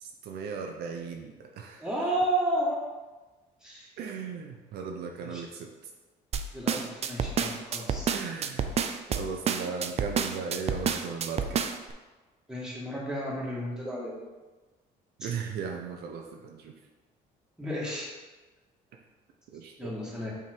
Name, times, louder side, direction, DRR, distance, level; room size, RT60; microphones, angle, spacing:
voice 1, 0.0-1.9 4.0-5.7 8.1-8.8 9.1-11.6 15.2-16.7 19.5-20.0, right 5 dB, 70° right, 2 dB, 0.7 m, -37 dB
voice 2, 1.8-2.8 3.6-3.9 5.2-5.4 6.5-8.1 12.5-14.1 15.2-15.3 17.6-18.1 19.8-20.3, right 1 dB, 5° right, -5 dB, 1.8 m, -32 dB
sound 1, 6.3-11.9, right 6 dB, 40° right, 0.4 m, -29 dB
5.8 x 3.7 x 4.5 m, 1.2 s
cardioid pair, 110°, 17 cm